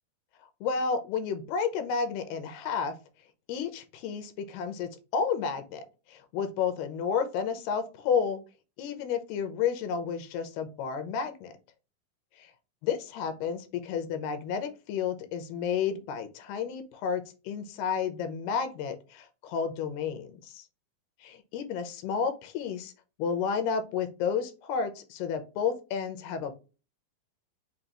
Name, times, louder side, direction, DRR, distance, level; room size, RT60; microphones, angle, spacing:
voice 1, 0.6-3.0 3.5-5.8 6.1-8.4 8.8-11.5 12.4-12.5 12.8-20.6 21.2-22.9 23.2-26.5, left 6 dB, 80° left, 7 dB, 2.7 m, -31 dB
6.5 x 2.3 x 2.9 m, 0.30 s
omnidirectional pair, 4.6 m